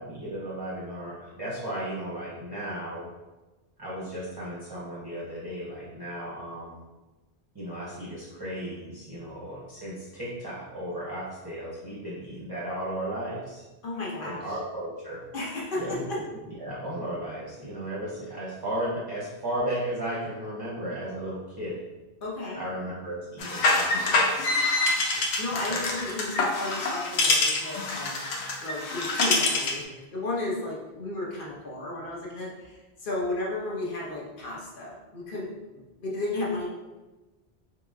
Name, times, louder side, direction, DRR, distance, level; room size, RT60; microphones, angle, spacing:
voice 1, 0.0-3.0 3.8-6.8 7.5-13.6 14.2-15.2 15.8-16.2 16.6-21.8 22.5-24.5 25.7-26.0, right 1 dB, 25° right, -8 dB, 0.7 m, -35 dB
voice 2, 13.8-14.4 15.3-16.2 22.2-22.6 24.7-28.3 28.6-35.5 36.0-36.7, left 2 dB, 55° left, -4 dB, 1.0 m, -33 dB
sound 1, 23.4-29.8, left 2 dB, 80° left, 0.8 m, -26 dB
3.9 x 3.1 x 2.3 m, 1.1 s
omnidirectional pair, 1.1 m